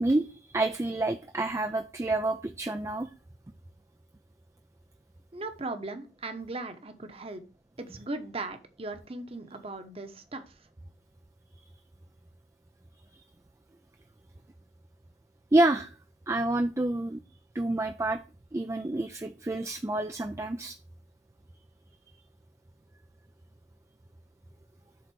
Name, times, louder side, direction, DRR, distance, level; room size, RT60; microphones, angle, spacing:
voice 1, 0.0-3.1 15.5-15.9 16.3-17.2 17.5-18.2 18.5-20.8, right 2 dB, 15° right, 7 dB, 0.4 m, -28 dB
voice 2, 5.3-7.4 7.8-10.4, right 2 dB, 35° right, 8 dB, 1.0 m, -38 dB
7.7 x 3.9 x 6.2 m, 0.33 s
head